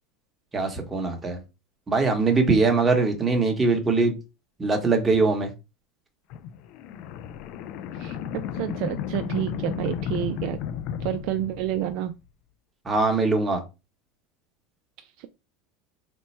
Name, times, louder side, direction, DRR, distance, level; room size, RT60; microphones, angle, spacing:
voice 1, 0.5-1.4 1.9-4.2 4.6-5.5 12.8-13.6, right 3 dB, 15° right, 2 dB, 1.0 m, -22 dB
sound 1, 6.3-12.2, left 8 dB, 55° left, 0.3 m, -33 dB
voice 2, 7.9-10.6 11.0-12.1 15.0-15.3, right 12 dB, 60° right, 9 dB, 0.3 m, -30 dB
3.0 x 2.2 x 4.2 m, 0.27 s
supercardioid pair, 135°, 0 cm